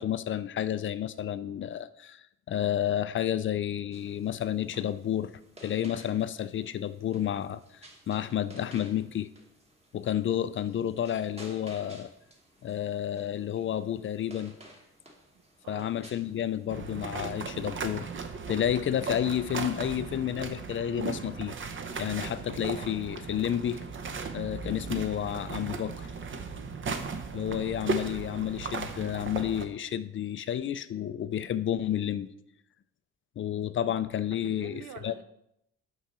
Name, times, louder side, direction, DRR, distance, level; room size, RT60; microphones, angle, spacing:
voice 1, 0.0-5.3 5.6-7.6 8.1-9.3 9.9-12.1 12.6-14.5 15.7-18.1 18.5-21.5 22.0-23.8 24.3-26.1 27.3-32.3 33.4-35.1, left 10 dB, 40° left, 14 dB, 0.4 m, -31 dB
sound 1, 3.9-16.7, right 1 dB, 20° right, 1.4 m, -54 dB
voice 2, 15.3-16.0 34.3-35.2, right 7 dB, 75° right, 9 dB, 0.8 m, -46 dB
sound 2, 16.7-29.7, right 4 dB, 40° right, 0.7 m, -36 dB
6.0 x 5.6 x 4.3 m, 0.79 s
cardioid pair, 90°, 30 cm